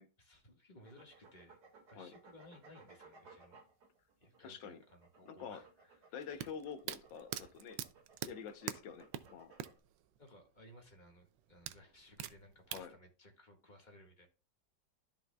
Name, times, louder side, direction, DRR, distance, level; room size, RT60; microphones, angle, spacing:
voice 1, 0.2-1.6 1.9-3.6 4.2-6.5 10.2-14.3, left 1 dB, 25° left, 1.7 m, -60 dB
sound 1, 0.8-9.8, right 4 dB, 60° right, 2.5 m, -61 dB
voice 2, 4.4-4.8 5.2-5.6 6.1-7.8 8.2-9.5 12.7-13.0, left 7 dB, 80° left, 1.6 m, -47 dB
sound 2, 6.2-9.9 10.2-10.3 11.7-12.9, right 12 dB, 80° right, 1.3 m, -42 dB
13.0 x 5.5 x 2.3 m
omnidirectional pair, 2.0 m